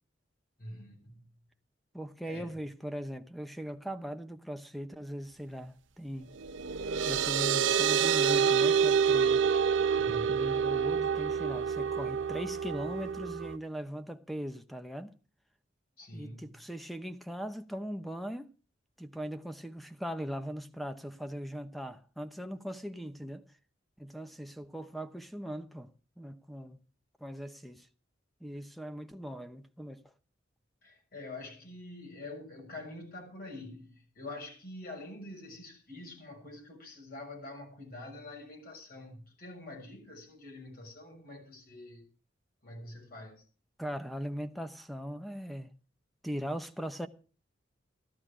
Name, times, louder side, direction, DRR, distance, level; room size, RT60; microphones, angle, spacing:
voice 1, 0.6-1.4 2.3-2.5 10.0-10.5 16.0-16.6 30.8-42.0 42.6-43.4, left 2 dB, 55° left, 6.4 m, -46 dB
voice 2, 1.9-6.3 7.1-9.4 10.1-15.1 16.1-18.5 19.0-23.4 24.0-25.9 26.2-26.8 27.2-27.9 28.4-30.0 43.8-45.7 46.2-47.1, equal, ahead, 0.9 m, -39 dB
sound 1, 6.4-13.6, right 7 dB, 85° right, 0.8 m, -27 dB
14.5 x 12.5 x 5.0 m
head